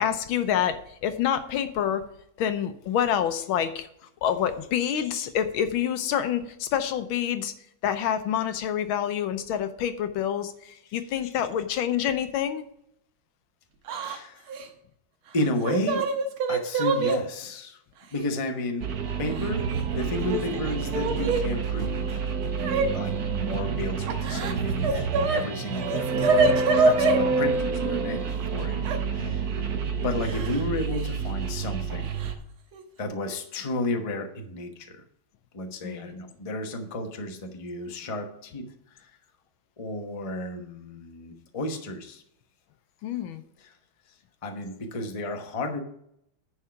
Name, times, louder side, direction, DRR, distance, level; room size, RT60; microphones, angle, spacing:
voice 1, 0.0-2.0 2.4-3.9 4.2-7.5 7.8-12.6 27.0-27.1 29.2-29.3 35.8-36.2 43.0-43.4, left 9 dB, 75° left, 10 dB, 1.5 m, -27 dB
Yell / Crying sobbing, 13.9-14.2 14.5-14.7 15.4-17.2 18.1-18.2 19.3-19.8 20.1-21.4 22.6-22.9 24.1-25.4 25.7-27.2 28.8-29.0 30.2-30.6 30.9-31.1 32.2-32.3 32.7-33.0, right 3 dB, 85° right, 1.9 m, -25 dB
voice 2, 14.0-14.5 15.3-16.0 16.5-17.8 18.1-18.9 19.2-19.6 19.9-22.3 22.5-26.2 26.5-29.7 30.0-32.1 33.0-35.0 35.5-38.6 39.0-39.1 39.8-42.2 43.6-43.7 44.4-45.8, left 2 dB, 25° left, 4 dB, 0.7 m, -32 dB
sound 1, 18.8-32.3, right 5 dB, 55° right, 1.3 m, -28 dB
10.0 x 4.8 x 5.7 m, 0.73 s
omnidirectional pair, 2.3 m